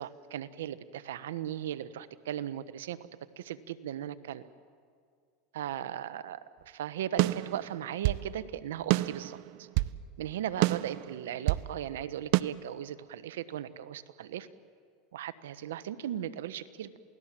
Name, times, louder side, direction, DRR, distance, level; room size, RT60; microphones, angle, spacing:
voice 1, 0.0-3.0 3.4-4.4 5.5-6.4 6.7-9.7 10.2-14.5 15.1-17.0, right 11 dB, 90° right, 14 dB, 1.0 m, -37 dB
sound 1, 7.2-8.3 8.9-10.0 10.6-11.7 12.3-12.4, right 20 dB, 65° right, 0.6 m, -28 dB
28.0 x 18.5 x 7.5 m, 2.2 s
supercardioid pair, 115°, 0 cm